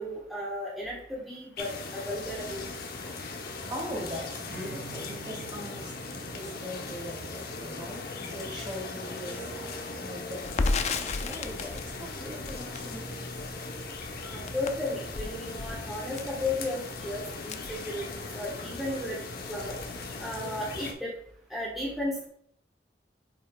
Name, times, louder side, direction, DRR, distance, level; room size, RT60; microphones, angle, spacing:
voice 1, 0.0-2.6 14.2-18.1 18.3-19.8 20.2-21.1 21.5-22.3, left 1 dB, ahead, -6 dB, 1.4 m, -34 dB
sound 1, 1.6-20.9, left 3 dB, 60° left, 0.9 m, -39 dB
voice 2, 3.7-9.7 10.0-13.4, equal, 30° right, -2 dB, 1.9 m, -41 dB
Strum, 4.5-9.9, right 4 dB, 80° right, 1.8 m, -51 dB
Crackle, 10.4-18.5 18.8-19.0 19.3-20.0, left 3 dB, 40° left, 0.4 m, -35 dB
7.5 x 5.6 x 2.4 m, 0.65 s
head